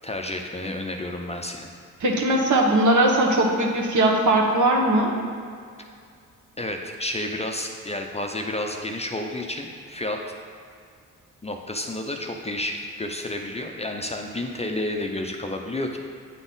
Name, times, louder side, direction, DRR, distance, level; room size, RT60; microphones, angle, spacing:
voice 1, 0.0-1.7 6.6-10.2 11.4-16.0, left 1 dB, 20° left, 2 dB, 0.5 m, -30 dB
voice 2, 2.0-5.1, right 1 dB, 60° right, 0 dB, 1.2 m, -20 dB
8.9 x 4.0 x 3.9 m, 2.2 s
cardioid pair, 75°, 34 cm